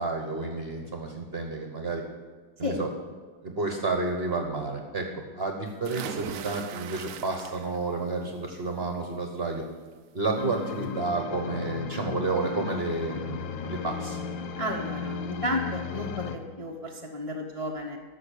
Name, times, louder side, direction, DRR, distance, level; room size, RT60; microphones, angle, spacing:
voice 1, 0.0-2.0 2.6-2.9 3.4-5.1 5.3-9.6 10.1-14.2, right 3 dB, 40° right, 3 dB, 1.1 m, -30 dB
sound 1, 5.8-7.9 8.3-8.8 10.2-10.3 10.6-10.7, right 9 dB, 85° right, 0.7 m, -39 dB
sound 2, 10.4-16.4, left 6 dB, 80° left, 1.5 m, -35 dB
voice 2, 14.5-18.0, left 1 dB, 25° left, 0 dB, 0.9 m, -32 dB
13.5 x 6.3 x 8.4 m, 1.4 s
omnidirectional pair, 2.0 m